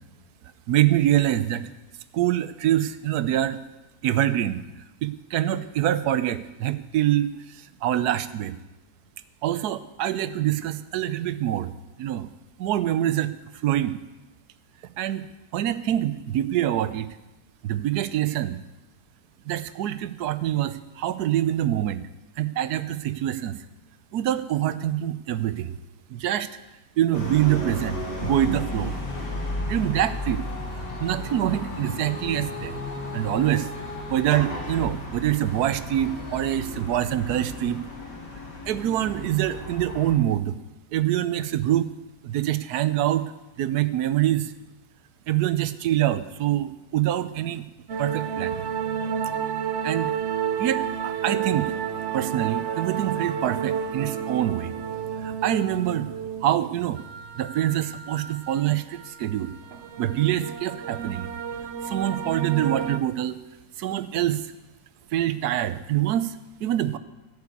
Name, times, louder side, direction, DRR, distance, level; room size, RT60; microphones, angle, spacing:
voice 1, 0.7-1.7 2.1-3.6 4.0-4.6 5.0-8.5 9.4-11.7 12.0-12.3 12.6-13.3 13.6-14.0 15.0-15.3 15.5-17.2 17.6-18.6 19.5-22.1 22.4-23.6 24.1-25.8 26.1-26.5 27.0-29.0 29.7-30.4 31.0-32.8 33.1-33.7 34.1-37.8 38.7-40.5 40.9-41.9 42.2-43.3 43.6-44.5 45.3-47.6 48.0-48.6 49.8-50.1 50.6-51.7 52.1-54.7 55.2-56.1 56.4-57.0 57.3-59.5 60.0-61.3 61.8-63.4 63.8-64.4 65.1-67.0, right 12 dB, 75° right, 14 dB, 1.2 m, -25 dB
sound 1, 27.1-40.2, left 1 dB, 85° left, 3.0 m, -34 dB
Female singing, 29.1-35.0 35.4-39.7 40.3-40.4, left 4 dB, 60° left, 2.0 m, -43 dB
sound 2, 47.9-63.0, right 8 dB, 55° right, 0.8 m, -31 dB
12.5 x 6.8 x 8.4 m, 1.0 s
omnidirectional pair, 1.8 m